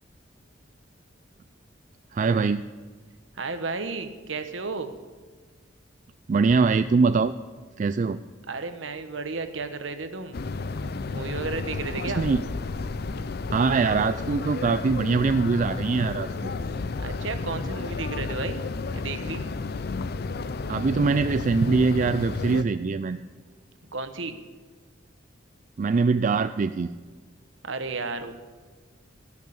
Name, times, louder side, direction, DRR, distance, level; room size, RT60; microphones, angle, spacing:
voice 1, 2.1-2.6 6.3-7.3 7.8-8.2 12.1-12.4 13.5-16.5 20.7-23.2 25.8-26.9, right 4 dB, 40° right, 11 dB, 0.3 m, -23 dB
voice 2, 3.4-4.9 8.5-10.4 11.1-12.3 17.0-18.6 18.9-19.4 23.9-24.4 27.6-28.3, right 4 dB, 70° right, 9 dB, 1.2 m, -33 dB
sound 1, 10.3-22.6, left 3 dB, 55° left, 0.5 m, -32 dB
17.5 x 6.5 x 8.7 m, 1.5 s
head